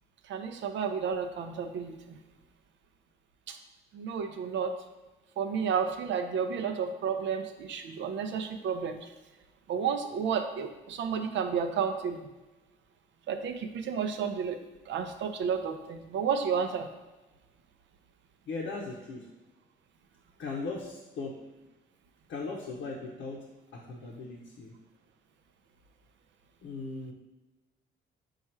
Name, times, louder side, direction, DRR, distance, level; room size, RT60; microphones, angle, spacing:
voice 1, 0.3-2.2 3.5-3.6 3.9-4.7 5.4-9.1 9.7-12.3 13.3-14.6 14.9-16.9, right 6 dB, 70° right, 8 dB, 0.5 m, -31 dB
voice 2, 18.5-19.2 20.4-21.4 22.3-23.4 23.7-24.7 26.6-27.1, left 3 dB, 75° left, -2 dB, 0.7 m, -38 dB
4.4 x 2.4 x 4.3 m, 1.1 s
cardioid pair, 90°, 20 cm